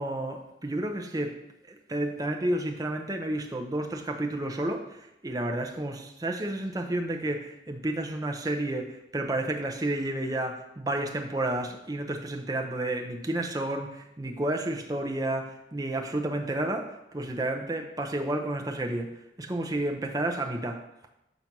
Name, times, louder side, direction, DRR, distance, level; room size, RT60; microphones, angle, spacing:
voice 1, 0.0-1.4 1.7-20.9, right 1 dB, 20° right, 3 dB, 0.5 m, -31 dB
5.9 x 4.0 x 5.9 m, 0.87 s
head